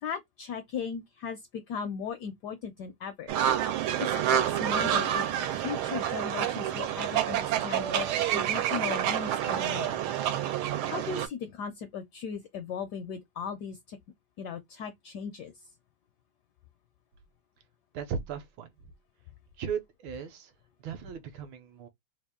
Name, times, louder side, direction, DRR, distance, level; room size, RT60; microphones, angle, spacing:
voice 1, 0.0-3.3 3.7-5.3 5.6-10.0 10.9-14.0 14.4-15.5, left 6 dB, 75° left, 0.9 m, -37 dB
sound 1, 3.3-11.3, right 11 dB, 90° right, 1.5 m, -28 dB
voice 2, 17.9-18.9 19.6-20.5 20.8-21.9, right 6 dB, 75° right, 1.4 m, -37 dB
3.5 x 2.4 x 3.5 m
omnidirectional pair, 2.3 m